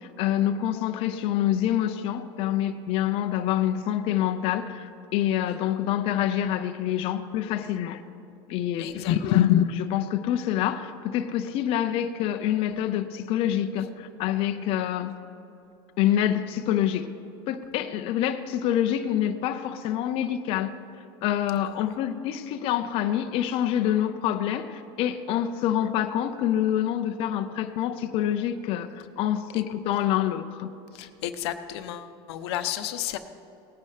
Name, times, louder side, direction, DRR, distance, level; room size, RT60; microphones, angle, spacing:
voice 1, 0.0-8.0 8.5-15.1 16.0-17.1 17.5-30.7, left 11 dB, 45° left, 7 dB, 0.6 m, -26 dB
voice 2, 8.8-9.1 21.7-22.0 29.5-29.7 30.9-33.2, left 12 dB, 85° left, 9 dB, 0.8 m, -33 dB
19.0 x 9.7 x 3.3 m, 2.9 s
supercardioid pair, 150°, 13 cm